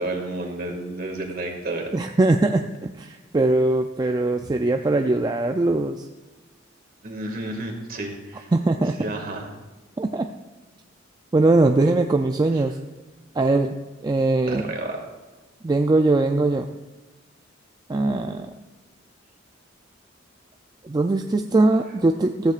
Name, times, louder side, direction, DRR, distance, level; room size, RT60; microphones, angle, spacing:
voice 1, 0.0-1.9 4.4-4.5 7.0-8.5 9.0-9.5 11.8-11.9 14.5-15.0, right 2 dB, 50° right, 2 dB, 2.1 m, -31 dB
voice 2, 1.9-6.1 8.5-9.0 10.0-10.3 11.3-12.8 13.4-13.8 14.0-14.6 15.6-16.7 17.9-18.5 20.8-22.5, right 2 dB, 20° right, 5 dB, 0.4 m, -21 dB
14.5 x 14.0 x 2.5 m, 1.1 s
head